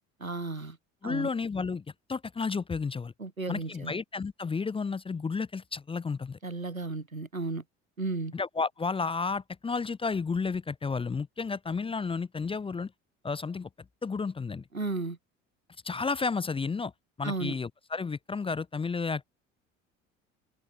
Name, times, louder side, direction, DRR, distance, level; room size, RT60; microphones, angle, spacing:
voice 1, 0.2-0.8 1.0-1.3 3.2-3.9 6.4-7.6 8.0-8.3 14.7-15.2 17.2-17.6, right 3 dB, 90° right, 1.5 m, -34 dB
voice 2, 1.0-3.1 3.5-6.4 8.3-12.9 13.2-13.7 14.0-14.6 15.8-16.9 17.2-19.2, left 4 dB, 15° left, 0.6 m, -32 dB
figure-of-eight pair, 60°, 40 cm